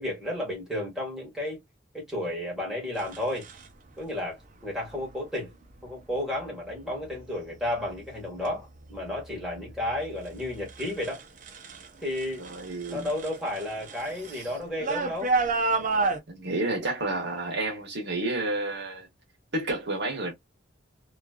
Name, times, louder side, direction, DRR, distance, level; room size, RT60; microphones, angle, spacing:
voice 1, 0.0-1.6 1.9-3.5 4.0-5.5 5.8-11.2 12.0-12.4 12.9-15.3, left 1 dB, 5° right, 1.6 m, -32 dB
sound 1, 3.0-3.7 4.8-5.1 5.7-6.2 6.7-7.2 7.6-11.9 12.1-16.2, right 3 dB, 45° right, 0.7 m, -32 dB
voice 2, 12.4-13.1 16.3-19.1 19.5-20.3, right 2 dB, 60° right, 1.3 m, -30 dB
3.1 x 2.5 x 2.3 m
head